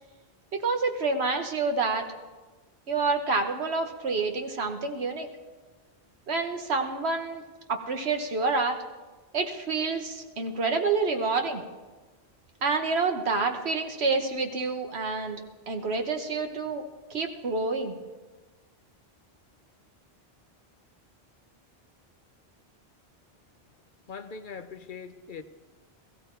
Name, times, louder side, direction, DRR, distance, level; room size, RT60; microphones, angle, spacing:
voice 1, 0.5-2.1 2.9-5.3 6.3-7.4 7.7-8.8 9.3-11.6 12.6-15.4 15.7-16.8 17.1-18.0, right 4 dB, 75° right, 5 dB, 1.5 m, -28 dB
voice 2, 24.1-25.4, left 5 dB, 55° left, 10 dB, 0.7 m, -41 dB
16.0 x 15.0 x 4.6 m, 1.3 s
omnidirectional pair, 1.1 m